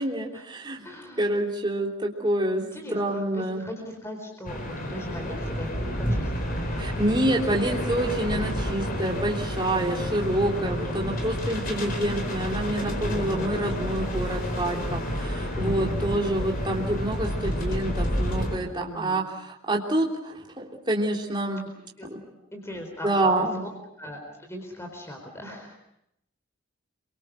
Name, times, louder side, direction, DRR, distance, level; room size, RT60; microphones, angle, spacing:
voice 1, 0.0-0.8 1.2-2.6 2.9-3.7 6.8-21.6 22.1-22.2 23.0-23.6, right 1 dB, 20° right, -2 dB, 3.4 m, -27 dB
voice 2, 0.8-1.3 2.6-6.9 7.3-7.6 9.7-10.9 13.1-13.6 15.8-16.2 18.8-19.3 22.0-22.1 22.5-23.7 24.0-25.7, equal, 10° left, 3 dB, 4.2 m, -39 dB
sound 1, 4.4-18.6, equal, 40° left, 4.2 m, -30 dB
28.0 x 24.0 x 6.4 m, 0.76 s
head